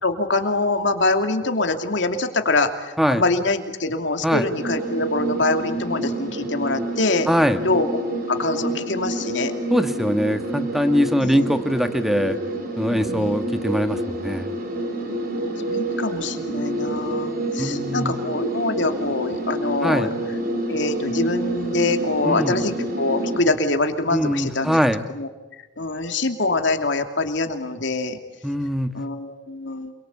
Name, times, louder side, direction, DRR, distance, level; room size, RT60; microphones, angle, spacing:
voice 1, 0.0-7.3 7.6-7.9 8.3-9.5 11.2-11.5 12.9-13.3 15.7-20.1 20.7-24.8 25.1-25.3 25.8-28.2 28.9-29.9, left 2 dB, 75° left, 6 dB, 2.8 m, -24 dB
sound 1, 4.5-23.4, right 1 dB, 50° right, 4.7 m, -28 dB
voice 2, 7.3-7.6 9.7-12.4 12.8-14.5 17.6-18.1 19.8-20.1 22.2-22.6 24.1-25.0 28.4-28.9, equal, ahead, 8 dB, 1.5 m, -22 dB
28.0 x 23.0 x 8.4 m, 1.1 s
head